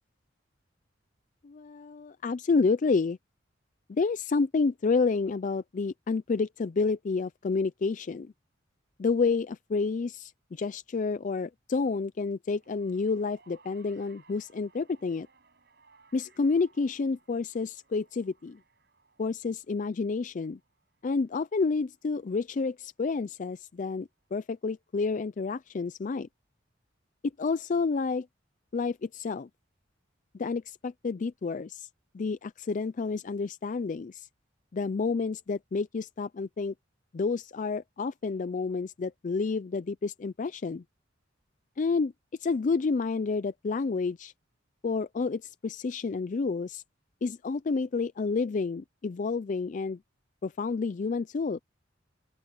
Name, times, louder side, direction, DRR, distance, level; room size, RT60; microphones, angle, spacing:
voice 1, 1.4-3.2 3.9-8.3 9.0-15.3 16.1-18.6 19.2-20.6 21.0-26.3 27.4-28.3 28.7-29.5 30.3-31.9 32.1-34.3 34.7-36.7 37.1-40.8 41.8-42.1 42.4-44.3 44.8-46.8 47.2-50.0 50.4-51.6, left 4 dB, 40° left, 0.4 m, -29 dB
sound 1, 12.5-23.0 24.0-24.1, right 4 dB, 60° right, 5.6 m, -64 dB
open air
head